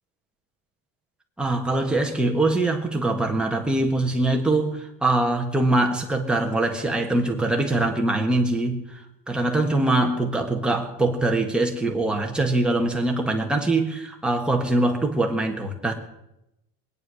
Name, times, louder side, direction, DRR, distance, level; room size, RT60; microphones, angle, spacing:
voice 1, 1.4-9.0 9.3-15.9, right 2 dB, 5° right, 1 dB, 1.5 m, -23 dB
21.0 x 9.7 x 6.2 m, 0.86 s
cardioid pair, 170°, 31 cm